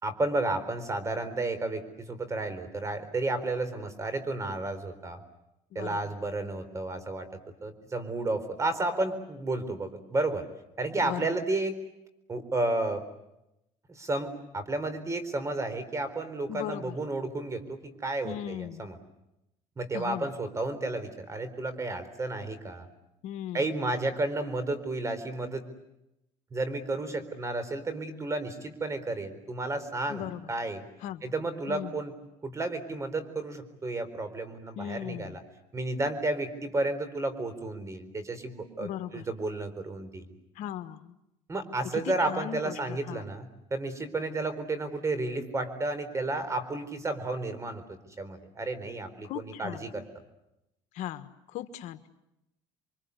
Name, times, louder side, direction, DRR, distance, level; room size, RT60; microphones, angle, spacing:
voice 1, 0.0-5.2 5.7-10.5 10.8-11.8 12.3-13.1 13.9-19.0 19.8-22.9 23.5-25.7 26.5-30.8 31.2-32.1 32.4-35.4 35.7-40.2 41.5-47.8 48.2-50.0, right 2 dB, 25° right, 12 dB, 4.2 m, -32 dB
voice 2, 5.7-6.1 11.0-11.3 16.5-17.0 18.2-18.8 19.9-20.3 23.2-23.7 30.1-30.5 31.0-31.2 31.7-32.0 34.8-35.4 38.8-39.3 40.5-41.1 41.9-43.2 49.2-49.9 50.9-52.1, left 11 dB, 75° left, 10 dB, 1.5 m, -38 dB
29.0 x 24.0 x 8.3 m, 0.88 s
cardioid pair, 115°, 12 cm